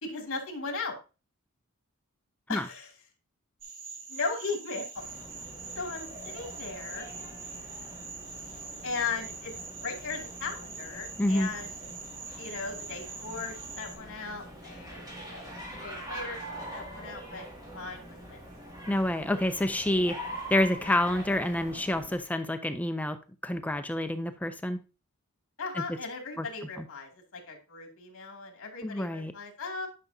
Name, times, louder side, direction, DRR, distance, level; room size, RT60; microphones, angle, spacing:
voice 1, 0.0-0.9 2.5-2.9 4.1-5.0 5.7-7.1 8.8-9.5 9.8-11.7 12.4-18.4 25.6-29.9, left 4 dB, 65° left, 2.3 m, -37 dB
sound 1, 3.6-14.0, right 5 dB, 65° right, 2.3 m, -43 dB
sound 2, 4.9-22.2, right 1 dB, 20° right, 2.1 m, -44 dB
voice 2, 11.2-11.5 18.9-20.2 20.5-24.8 25.7-25.8 26.4-26.5 26.8-26.9 28.8-29.3, left 1 dB, 5° left, 0.4 m, -28 dB
10.5 x 5.8 x 2.7 m
head